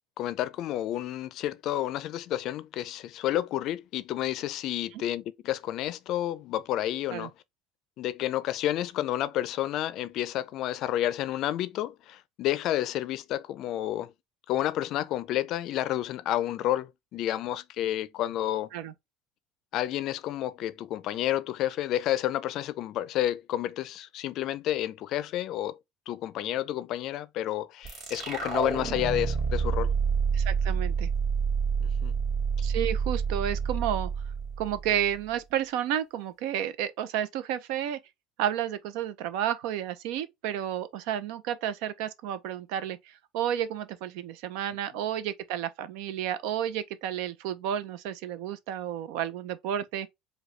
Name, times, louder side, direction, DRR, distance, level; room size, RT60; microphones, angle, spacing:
voice 1, 0.2-7.3 8.0-14.1 14.5-18.7 19.7-25.8 26.1-29.9 31.8-32.1, left 13 dB, 55° left, 0.4 m, -30 dB
sound 1, 27.8-35.1, right 6 dB, 45° right, 1.9 m, -28 dB
voice 2, 30.3-31.1 32.6-34.1 34.6-38.0 38.4-50.1, right 10 dB, 70° right, 0.5 m, -31 dB
4.8 x 2.3 x 3.1 m
supercardioid pair, 125°, 0 cm